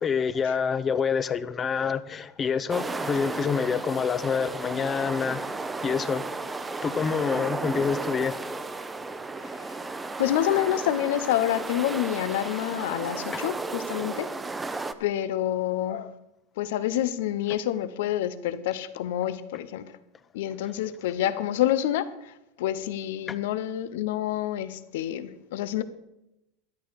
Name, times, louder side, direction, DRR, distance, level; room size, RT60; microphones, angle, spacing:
voice 1, 0.0-6.2 6.8-8.4 13.3-13.5 20.9-21.0 23.3-23.4, left 6 dB, 30° left, 0.8 m, -27 dB
sound 1, 2.7-14.9, right 3 dB, 15° right, 0.9 m, -34 dB
voice 2, 10.2-14.3 15.0-16.1 16.6-20.0 20.3-25.8, left 12 dB, 80° left, 0.9 m, -28 dB
13.0 x 10.5 x 4.9 m
supercardioid pair, 110°, 0 cm